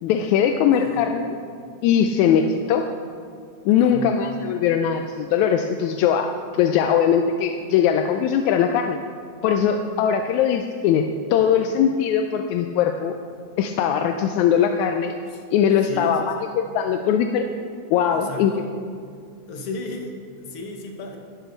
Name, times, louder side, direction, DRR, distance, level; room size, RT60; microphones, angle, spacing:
voice 1, 0.0-1.4 1.8-2.9 3.7-9.0 9.4-13.2 13.6-15.2 15.5-17.5 17.9-18.5, left 8 dB, 85° left, 5 dB, 1.9 m, -20 dB
voice 2, 0.7-1.1 3.7-4.2 15.3-15.4 15.9-16.5 18.1-18.6 19.5-21.2, left 2 dB, 60° left, 2 dB, 1.8 m, -35 dB
12.5 x 10.5 x 4.0 m, 2.2 s
omnidirectional pair, 3.3 m